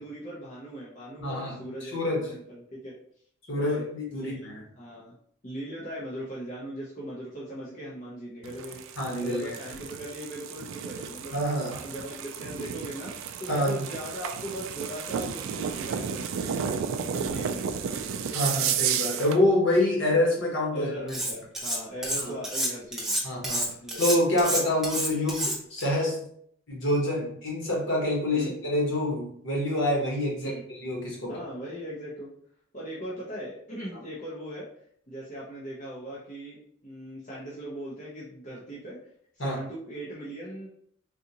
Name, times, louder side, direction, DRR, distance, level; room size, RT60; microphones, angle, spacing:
voice 1, 0.0-2.0 2.3-2.9 3.6-3.9 4.1-5.1 5.4-8.8 9.2-11.3 11.6-13.1 13.4-18.6 20.7-23.2 23.8-24.2 28.3-28.5 30.4-30.6 31.3-32.3 32.7-34.7 35.1-36.6 36.8-39.0 39.4-40.7, equal, 35° left, -7 dB, 0.7 m, -39 dB
voice 2, 1.2-2.3 3.5-4.6 9.0-9.5 11.3-11.8 13.5-13.8 18.3-20.9 22.2-22.3 23.2-23.7 24.0-26.2 26.7-31.4 39.4-39.6, left 1 dB, 65° left, -3 dB, 1.2 m, -26 dB
sound 1, 8.4-19.4, right 7 dB, 80° right, 0.3 m, -33 dB
Cutlery silverware, 21.1-21.8 22.0-25.8, right 1 dB, ahead, 0.7 m, -29 dB
3.7 x 2.5 x 2.8 m, 0.65 s
head